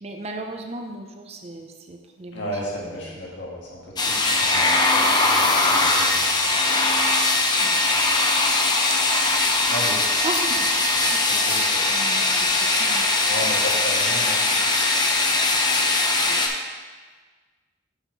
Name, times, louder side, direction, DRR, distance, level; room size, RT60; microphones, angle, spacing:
voice 1, 0.0-2.5 2.8-3.2 7.6-7.8 10.2-13.0 16.3-16.4, right 2 dB, 35° right, 3 dB, 0.6 m, -36 dB
voice 2, 2.3-6.5 9.7-10.0 11.3-11.8 13.2-14.4, left 1 dB, 65° left, -3 dB, 1.7 m, -34 dB
sound 1, 4.0-16.5, left 2 dB, 20° left, 0.6 m, -20 dB
5.9 x 5.7 x 4.4 m, 1.4 s
head